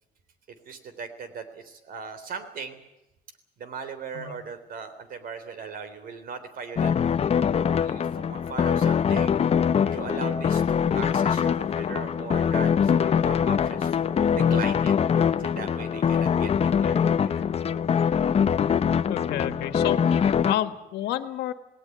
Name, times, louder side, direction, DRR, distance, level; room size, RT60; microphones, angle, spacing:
voice 1, 0.7-2.8 3.6-6.9 7.8-9.4 9.8-14.9 15.4-17.5, right 5 dB, 60° right, 12 dB, 3.6 m, -38 dB
sound 1, 6.8-20.5, left 7 dB, 35° left, 0.8 m, -23 dB
voice 2, 19.1-21.5, left 12 dB, 80° left, 10 dB, 1.7 m, -30 dB
19.0 x 18.5 x 9.5 m, 0.95 s
cardioid pair, 110°, 17 cm